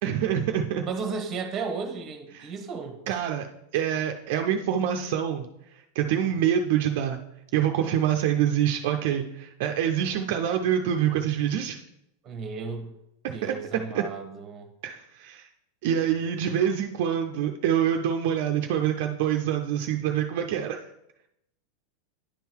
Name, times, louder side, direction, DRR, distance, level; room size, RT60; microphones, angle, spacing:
voice 1, 0.0-0.9 2.3-2.5 3.1-3.5 3.7-5.5 5.7-7.2 7.5-11.8 13.2-13.6 13.9-14.1 14.8-15.5 15.8-20.8, right 9 dB, 45° right, 4 dB, 0.4 m, -26 dB
voice 2, 0.8-3.0 12.2-12.9 13.3-14.7, right 5 dB, 15° right, 5 dB, 1.0 m, -34 dB
10.0 x 3.7 x 4.5 m, 0.83 s
supercardioid pair, 175°, 0 cm